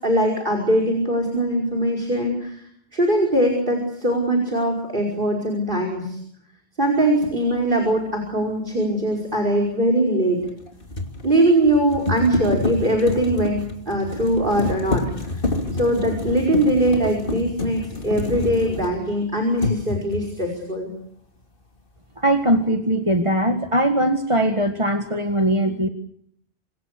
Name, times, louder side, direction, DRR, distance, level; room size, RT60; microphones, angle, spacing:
voice 1, 0.0-2.6 2.9-6.2 6.8-10.4 11.2-15.0 15.3-15.4 15.7-20.9, right 1 dB, 50° right, 3 dB, 5.5 m, -21 dB
sound 1, 7.2-7.4 10.4-19.2 19.6-20.4, left 2 dB, 55° left, 2.9 m, -28 dB
voice 2, 22.2-25.9, right 1 dB, 30° right, 5 dB, 1.8 m, -20 dB
27.5 x 25.5 x 6.7 m, 0.71 s
omnidirectional pair, 1.1 m